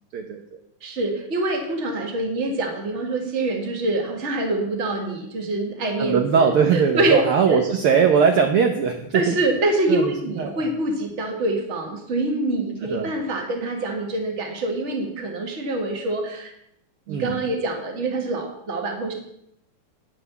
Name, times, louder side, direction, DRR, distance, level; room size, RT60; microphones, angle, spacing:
voice 1, 0.1-0.6 6.0-9.4 9.9-10.7 12.8-13.1 17.1-17.4, right 6 dB, 75° right, 4 dB, 1.3 m, -21 dB
voice 2, 0.8-7.2 7.5-7.6 9.1-16.5 17.1-19.1, right 2 dB, 30° right, 2 dB, 1.4 m, -25 dB
9.9 x 6.1 x 6.8 m, 0.79 s
omnidirectional pair, 3.4 m